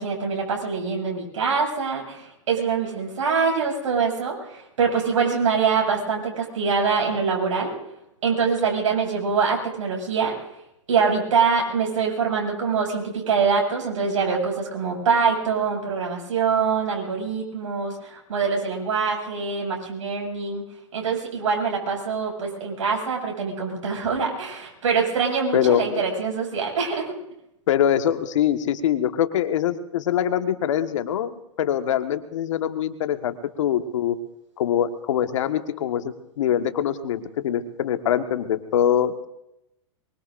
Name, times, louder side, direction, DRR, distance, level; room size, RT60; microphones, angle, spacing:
voice 1, 0.0-7.7 8.2-10.3 10.9-20.7 20.9-27.1, right 5 dB, 75° right, -1 dB, 6.9 m, -24 dB
voice 2, 25.5-26.0 27.7-34.2 34.6-39.3, left 10 dB, 70° left, 8 dB, 1.6 m, -23 dB
23.5 x 23.5 x 2.6 m, 0.85 s
hypercardioid pair, 120°, 17 cm